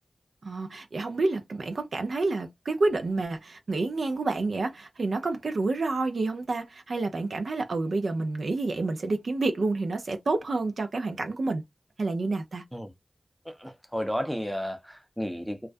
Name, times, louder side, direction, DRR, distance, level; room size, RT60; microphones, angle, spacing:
voice 1, 0.4-11.6 12.0-12.6, right 3 dB, 70° right, 0.5 m, -29 dB
voice 2, 13.6-15.7, equal, 5° right, 0.6 m, -32 dB
2.3 x 2.1 x 2.5 m
wide cardioid pair, 65°, 0 cm